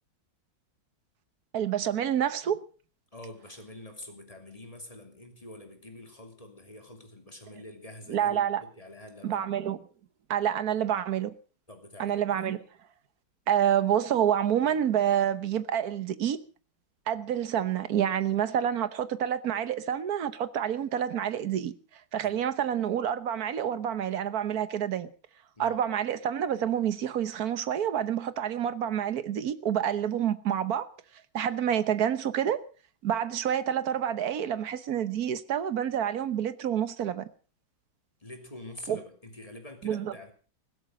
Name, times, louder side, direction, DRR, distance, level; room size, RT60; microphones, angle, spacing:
voice 1, 1.5-2.6 8.1-8.6 9.2-9.8 10.3-11.3 12.0-12.6 13.5-16.4 17.1-21.7 22.1-25.1 25.6-30.9 31.3-32.6 33.0-37.2 38.9-39.0 39.8-40.1, right 9 dB, 55° right, 1.3 m, -28 dB
voice 2, 3.1-9.4 11.7-12.5 22.2-22.5 25.6-25.8 38.2-40.3, left 1 dB, 15° left, 2.9 m, -46 dB
16.5 x 13.0 x 6.1 m
omnidirectional pair, 2.3 m